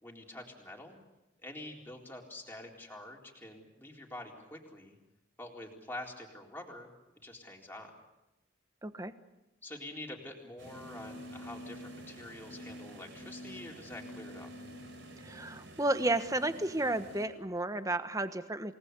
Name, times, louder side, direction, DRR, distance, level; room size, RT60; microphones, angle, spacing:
voice 1, 0.0-1.0 1.4-5.0 5.4-6.9 7.2-7.9 9.6-14.5, left 1 dB, 10° left, -1 dB, 4.0 m, -46 dB
voice 2, 8.8-9.1 15.2-18.7, right 2 dB, 15° right, 10 dB, 1.2 m, -32 dB
sound 1, 10.6-17.3, equal, 70° right, 4.4 m, -48 dB
28.5 x 19.5 x 8.3 m, 0.96 s
head